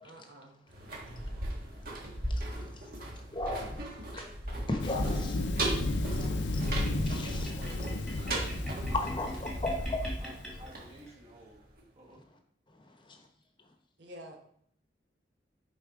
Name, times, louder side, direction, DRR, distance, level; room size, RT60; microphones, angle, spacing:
voice 1, 0.0-0.6 14.0-14.5, equal, 65° right, 1.1 m, -49 dB
sound 1, 0.7-11.5 11.8-11.9, right 1 dB, 50° right, 1.5 m, -37 dB
voice 2, 0.8-1.5 6.8-9.0 9.4-11.6 11.9-12.2, right 1 dB, 35° right, 1.5 m, -53 dB
voice 3, 2.3-2.8 3.3-4.2 4.7-7.5 8.1-8.2 8.9-10.0 12.8-13.3, left 2 dB, 25° left, 1.0 m, -37 dB
Thunder, 4.8-10.7, left 2 dB, 70° left, 0.5 m, -34 dB
sound 2, 6.7-11.1, equal, ahead, 1.7 m, -44 dB
7.2 x 4.3 x 4.8 m
head